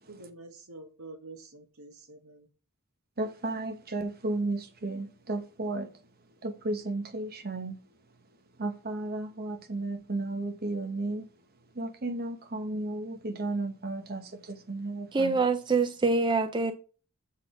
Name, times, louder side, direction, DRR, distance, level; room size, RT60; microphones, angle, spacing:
voice 1, 0.1-2.5, right 2 dB, 75° right, 1.3 m, -47 dB
voice 2, 3.2-5.9 6.4-7.8 8.6-11.2 11.8-15.4, right 2 dB, 45° right, 1.0 m, -33 dB
voice 3, 15.1-16.7, right 3 dB, 20° right, 0.4 m, -25 dB
7.4 x 4.2 x 4.8 m
head